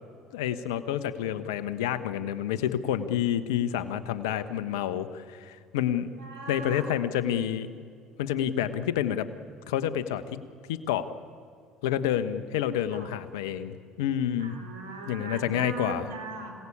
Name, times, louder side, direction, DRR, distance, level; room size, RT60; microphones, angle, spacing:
voice 1, 0.3-6.1 6.5-7.7 8.2-9.2 9.7-10.4 10.7-11.1 11.8-14.6 15.1-16.1, left 10 dB, 85° left, 12 dB, 1.3 m, -29 dB
voice 2, 6.2-6.8 12.9-13.1 14.4-16.5, right 3 dB, 85° right, 6 dB, 4.3 m, -39 dB
26.5 x 18.0 x 8.7 m, 2.3 s
hypercardioid pair, 70°, 2 cm